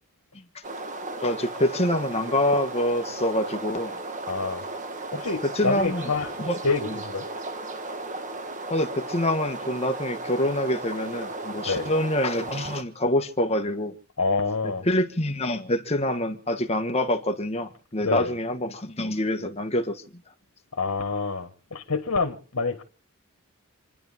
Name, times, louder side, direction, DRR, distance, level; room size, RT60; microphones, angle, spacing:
sound 1, 0.6-12.8, right 2 dB, 35° right, 1.4 m, -35 dB
voice 1, 1.2-4.0 5.1-6.1 6.4-6.6 6.9-7.0 8.7-13.9 14.8-20.0, left 1 dB, 30° left, 1.4 m, -26 dB
voice 2, 4.3-4.6 5.1-6.3 6.6-7.3 11.7-11.9 14.2-14.8 18.0-18.3 20.7-22.8, left 4 dB, 75° left, 1.6 m, -27 dB
28.5 x 11.0 x 3.6 m
head